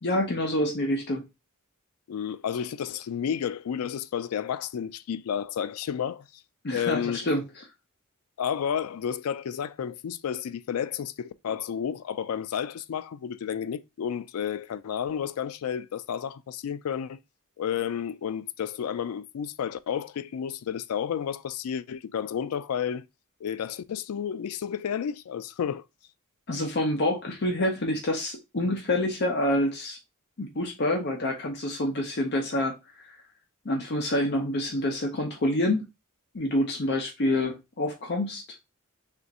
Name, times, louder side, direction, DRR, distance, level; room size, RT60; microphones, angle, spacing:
voice 1, 0.0-1.3 6.6-7.4 26.5-30.0 30.4-32.8 33.0-33.2 33.6-35.8 36.3-38.4, left 1 dB, 50° left, 0.7 m, -27 dB
voice 2, 2.1-6.3 6.7-7.2 8.4-17.2 17.6-23.0 23.4-25.8, left 8 dB, 85° left, 0.3 m, -31 dB
3.5 x 2.5 x 4.0 m
head